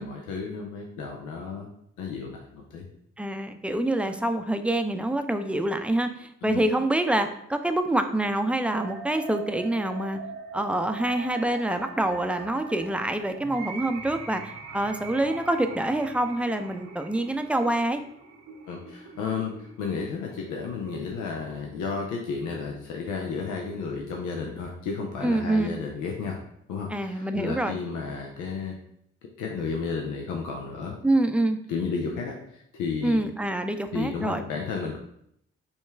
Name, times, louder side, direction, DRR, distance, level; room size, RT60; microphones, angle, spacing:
voice 1, 0.0-1.7 2.0-2.9 6.4-6.6 18.7-26.4 26.7-28.8 29.4-30.9 31.7-33.2 33.9-35.0, left 5 dB, 90° left, 1 dB, 0.5 m, -32 dB
voice 2, 3.2-10.2 10.5-18.0 25.2-25.8 26.9-27.8 31.0-31.6 33.0-34.4, right 1 dB, 5° right, 7 dB, 0.4 m, -26 dB
sound 1, 8.6-22.6, right 5 dB, 65° right, 0.7 m, -42 dB
5.2 x 2.4 x 3.3 m, 0.73 s
supercardioid pair, 50°, 30 cm